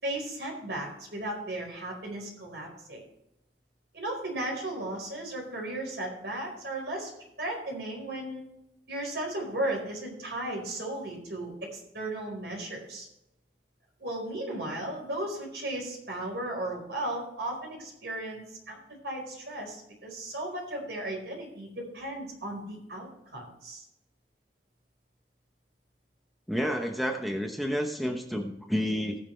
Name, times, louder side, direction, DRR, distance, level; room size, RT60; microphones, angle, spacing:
voice 1, 0.0-3.0 3.9-7.1 7.4-8.4 8.9-13.1 14.0-18.8 19.0-23.8, right 1 dB, 70° right, 0 dB, 4.6 m, -35 dB
voice 2, 26.5-29.2, equal, ahead, 2 dB, 0.9 m, -30 dB
20.0 x 6.7 x 3.3 m, 0.85 s
head